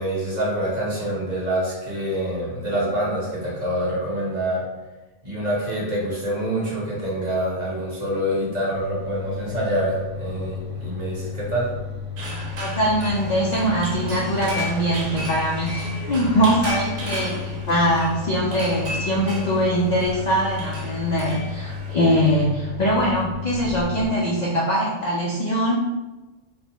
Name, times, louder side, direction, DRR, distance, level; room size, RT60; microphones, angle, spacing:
voice 1, 0.0-4.6 5.2-11.7, right 1 dB, 40° right, -6 dB, 1.0 m, -26 dB
sound 1, 8.7-24.1, left 6 dB, 30° left, 1.0 m, -33 dB
sound 2, 12.2-21.9, equal, 85° right, 1.0 m, -35 dB
voice 2, 12.6-25.7, equal, 65° left, -4 dB, 0.4 m, -22 dB
3.2 x 2.1 x 2.9 m, 1.1 s
omnidirectional pair, 1.2 m